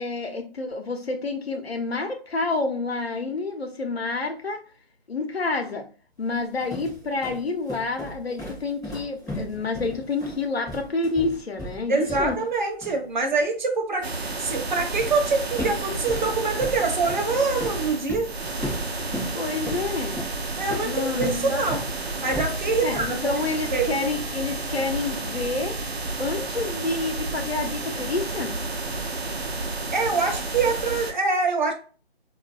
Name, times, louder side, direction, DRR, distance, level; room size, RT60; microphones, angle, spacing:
voice 1, 0.0-4.6 5.1-5.9 6.2-12.4 19.3-20.3 20.8-21.7 22.8-25.7 26.2-28.5, left 3 dB, 80° left, 4 dB, 0.9 m, -28 dB
sound 1, 6.3-12.6 12.8-13.0 15.0-15.2 15.6-21.9 22.3-23.2, left 1 dB, ahead, 0.6 m, -36 dB
voice 2, 11.9-18.3 20.6-21.8 22.2-23.1 23.7-24.0 29.9-31.7, right 4 dB, 50° right, 4 dB, 0.8 m, -25 dB
sound 2, 14.0-31.1, right 3 dB, 90° right, 0.7 m, -31 dB
4.4 x 2.6 x 2.4 m, 0.39 s
figure-of-eight pair, 150°, 31 cm